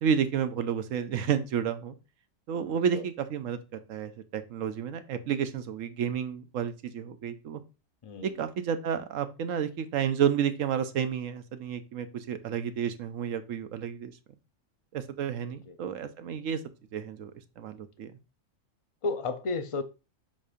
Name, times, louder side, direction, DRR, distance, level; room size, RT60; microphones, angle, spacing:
voice 1, 0.0-1.9 2.5-3.6 3.9-7.6 8.2-14.1 14.9-16.6 16.9-17.3 17.6-18.1, right 8 dB, 75° right, 10 dB, 1.0 m, -31 dB
voice 2, 19.0-19.8, left 3 dB, 35° left, 9 dB, 0.6 m, -32 dB
7.4 x 2.7 x 4.9 m, 0.30 s
omnidirectional pair, 1.4 m